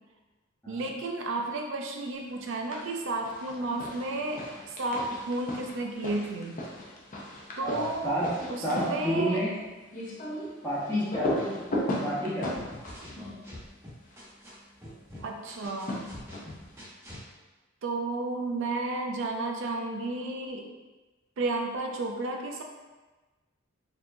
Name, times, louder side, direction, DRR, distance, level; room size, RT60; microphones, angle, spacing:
voice 1, 0.7-4.4 4.8-6.6 7.6-8.2 8.5-9.4 15.2-16.0 17.8-20.6 21.4-22.6, right 2 dB, 65° right, 2 dB, 0.5 m, -32 dB
sound 1, 2.4-3.0 3.2-14.3 15.5-16.7, left 1 dB, 40° left, 0.6 m, -37 dB
voice 2, 7.6-8.3 8.6-9.6 10.6-11.4 12.0-12.6, equal, 10° left, -11 dB, 1.0 m, -30 dB
sound 2, 12.5-14.5 14.8-17.2, left 1 dB, 15° right, 1.1 m, -45 dB
4.4 x 2.9 x 2.6 m, 1.2 s
head